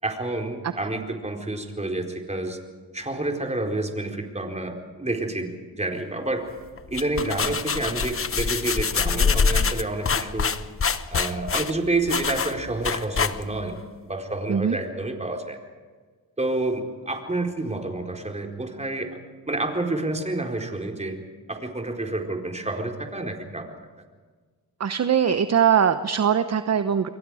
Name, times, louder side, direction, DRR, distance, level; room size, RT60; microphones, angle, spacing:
voice 1, 0.0-2.6 2.9-6.5 6.9-10.5 11.1-13.8 14.0-15.6 16.4-19.2 19.5-21.2 21.5-23.7, right 2 dB, 20° right, 2 dB, 4.4 m, -29 dB
sound 1, 6.8-13.7, left 5 dB, 35° left, 1.1 m, -25 dB
voice 2, 24.8-27.1, right 8 dB, 45° right, 10 dB, 1.0 m, -21 dB
28.5 x 23.0 x 5.0 m, 1.5 s
cardioid pair, 75°, 37 cm